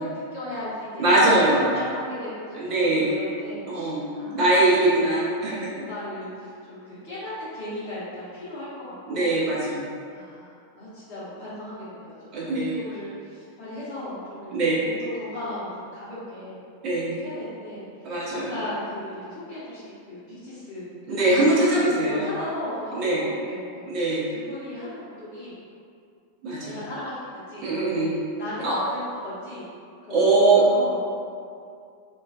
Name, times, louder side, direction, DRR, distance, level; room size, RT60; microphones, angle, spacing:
voice 1, 0.0-1.1 1.5-5.1 5.4-9.4 10.1-16.6 17.2-21.4 22.1-25.5 26.6-27.7 28.4-29.7 30.0-30.3 30.6-31.0, left 1 dB, 40° left, -14 dB, 0.8 m, -37 dB
voice 2, 1.0-1.6 2.5-3.1 3.7-5.7 9.1-9.9 12.3-12.7 14.5-14.8 16.8-17.2 18.0-18.5 21.1-22.3 22.9-23.2 23.9-24.3 26.4-26.8 27.6-28.2 28.6-28.8 30.1-30.6, right 2 dB, 40° right, -7 dB, 0.7 m, -22 dB
2.3 x 2.3 x 2.4 m, 2.3 s
figure-of-eight pair, 90°, 0 cm